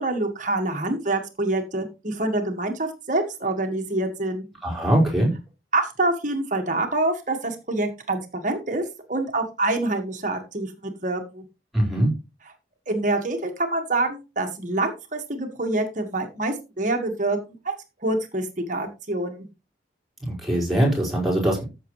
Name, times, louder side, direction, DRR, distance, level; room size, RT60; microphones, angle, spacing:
voice 1, 0.0-4.4 5.7-8.8 9.1-11.4 12.9-17.7 18.0-19.5, right 2 dB, 40° right, 5 dB, 1.7 m, -26 dB
voice 2, 4.6-5.3 11.7-12.1 20.2-21.6, right 1 dB, ahead, -4 dB, 5.0 m, -21 dB
14.0 x 6.8 x 3.2 m, 0.28 s
head